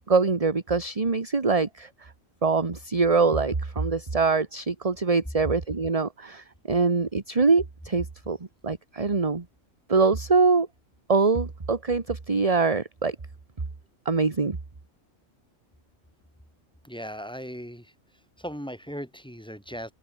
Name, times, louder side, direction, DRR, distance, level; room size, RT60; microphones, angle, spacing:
voice 1, 0.0-2.1 2.4-8.4 8.6-9.4 9.9-10.7 11.1-13.2 14.0-14.6, right 4 dB, 30° right, 1.4 m, -24 dB
voice 2, 16.8-17.9 18.4-19.9, equal, 5° left, 7.6 m, -37 dB
open air
omnidirectional pair, 1.4 m